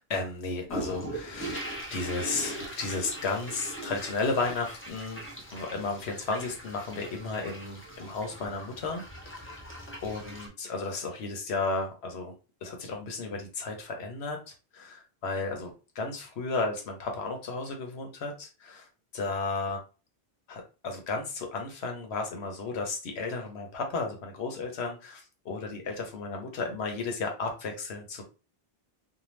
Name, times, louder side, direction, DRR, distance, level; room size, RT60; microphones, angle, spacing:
voice 1, 0.0-5.2 5.5-9.5 10.0-12.3 12.6-18.9 19.1-19.8 20.5-28.2, left 3 dB, 85° left, 3 dB, 1.0 m, -34 dB
sound 1, 0.7-10.5, right 1 dB, 15° left, 0.5 m, -40 dB
2.6 x 2.2 x 3.1 m, 0.33 s
omnidirectional pair, 1.1 m